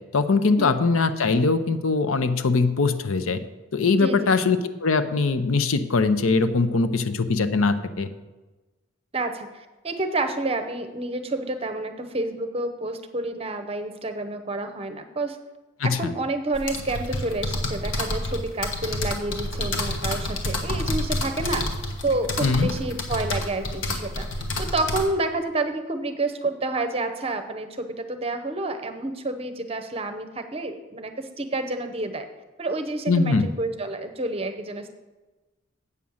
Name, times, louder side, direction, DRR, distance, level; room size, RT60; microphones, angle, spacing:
voice 1, 0.1-3.4 3.7-8.1 15.8-16.1 22.4-22.7 33.1-33.5, left 4 dB, 85° left, 11 dB, 0.7 m, -22 dB
voice 2, 4.0-4.3 9.1-15.4 15.8-21.7 22.0-32.2 32.6-34.9, right 2 dB, 30° right, 7 dB, 0.7 m, -29 dB
sound 1, 16.5-25.0, left 1 dB, 70° left, 1.4 m, -29 dB
8.3 x 6.3 x 7.1 m, 1.2 s
head